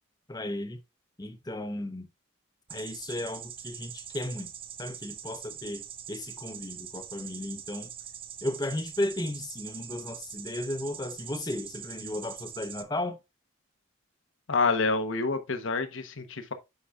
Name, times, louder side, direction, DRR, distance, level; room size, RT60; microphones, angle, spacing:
voice 1, 0.3-0.8 1.2-2.1 2.7-4.5 4.8-7.9 8.4-13.2, left 1 dB, 20° left, 0.7 m, -35 dB
sound 1, 2.7-12.8, right 9 dB, 25° right, 0.5 m, -43 dB
voice 2, 14.5-16.5, left 4 dB, 80° left, 1.0 m, -27 dB
8.4 x 5.7 x 2.4 m
head